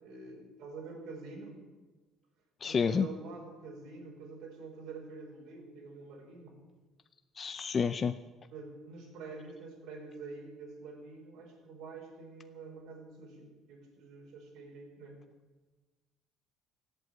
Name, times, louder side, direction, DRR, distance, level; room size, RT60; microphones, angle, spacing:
voice 1, 0.0-1.5 2.6-6.6 8.5-15.2, right 4 dB, 70° right, -1 dB, 5.3 m, -47 dB
voice 2, 2.6-3.1 7.4-8.2, left 6 dB, 30° left, 11 dB, 0.5 m, -29 dB
16.0 x 8.1 x 9.1 m, 1.3 s
cardioid pair, 135°, 0 cm